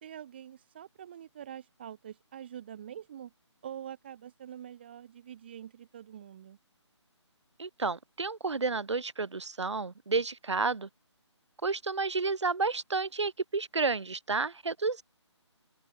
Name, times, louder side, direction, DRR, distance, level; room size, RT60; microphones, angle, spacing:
voice 1, 0.0-3.3 3.6-6.6, right 10 dB, 20° right, 0.6 m, -45 dB
voice 2, 7.6-10.9 11.6-15.0, right 4 dB, 70° right, 0.7 m, -31 dB
figure-of-eight pair, 150°, 15 cm